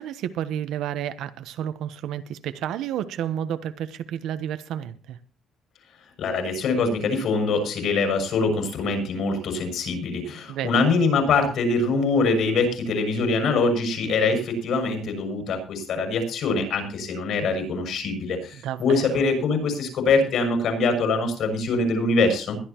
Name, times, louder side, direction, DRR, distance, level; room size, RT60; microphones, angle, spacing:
voice 1, 0.0-5.2 10.5-10.8 18.6-19.2, right 10 dB, 75° right, 1.1 m, -31 dB
voice 2, 6.2-22.6, left 3 dB, 60° left, 6.7 m, -23 dB
21.5 x 11.5 x 3.0 m
cardioid pair, 155°, 0 cm